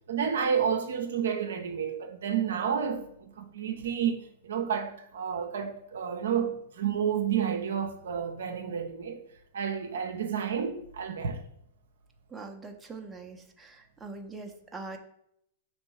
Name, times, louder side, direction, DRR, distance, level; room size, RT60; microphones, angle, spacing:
voice 1, 0.1-9.2 9.5-11.4, right 7 dB, 70° right, 0.6 m, -30 dB
voice 2, 12.3-15.0, right 3 dB, 15° right, 0.6 m, -43 dB
5.2 x 3.1 x 3.2 m
hypercardioid pair, 105°, 0 cm